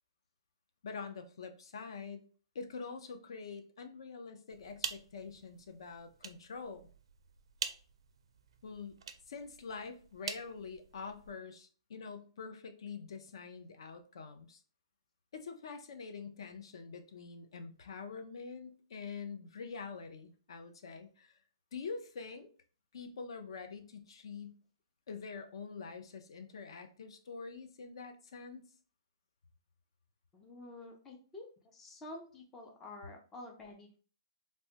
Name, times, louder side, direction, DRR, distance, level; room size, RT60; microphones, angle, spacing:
voice 1, 0.8-2.3 2.5-6.8 8.6-9.0 9.3-14.6 15.3-21.4 21.7-22.4 22.9-24.6 25.1-28.6, left 5 dB, 65° left, 7 dB, 0.5 m, -45 dB
sound 1, 4.5-11.3, right 6 dB, 80° right, 0.4 m, -46 dB
voice 2, 30.3-34.0, left 2 dB, 10° left, 1 dB, 0.3 m, -50 dB
3.3 x 2.1 x 2.7 m, 0.40 s
hypercardioid pair, 170°, 3 cm